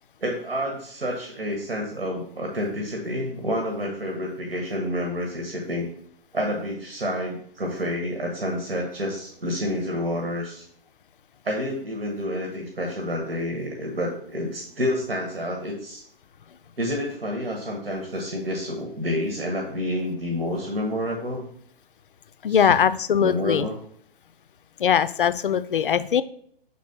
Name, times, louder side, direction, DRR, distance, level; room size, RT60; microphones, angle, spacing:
voice 1, 0.2-5.9 6.3-10.6 11.4-16.0 16.8-21.4 22.5-22.8 23.2-23.7, equal, 75° right, 1 dB, 1.3 m, -29 dB
voice 2, 22.4-23.7 24.8-26.2, left 8 dB, 60° left, 13 dB, 0.4 m, -21 dB
6.1 x 4.2 x 4.2 m, 0.64 s
figure-of-eight pair, 130°, 30 cm